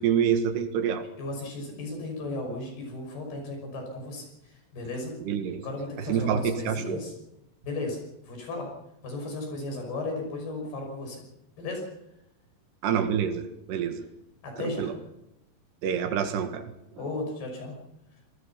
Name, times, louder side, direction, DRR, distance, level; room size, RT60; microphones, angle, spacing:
voice 1, 0.0-1.0 5.2-5.6 6.1-7.0 12.8-14.1 14.6-14.9 15.8-16.7, right 8 dB, 90° right, 7 dB, 3.9 m, -27 dB
voice 2, 1.2-5.2 5.6-7.1 7.6-8.7 9.0-11.2 11.6-11.8 14.4-14.9 17.0-17.8, left 2 dB, 70° left, 2 dB, 8.1 m, -35 dB
26.5 x 20.5 x 5.9 m, 0.85 s
omnidirectional pair, 4.7 m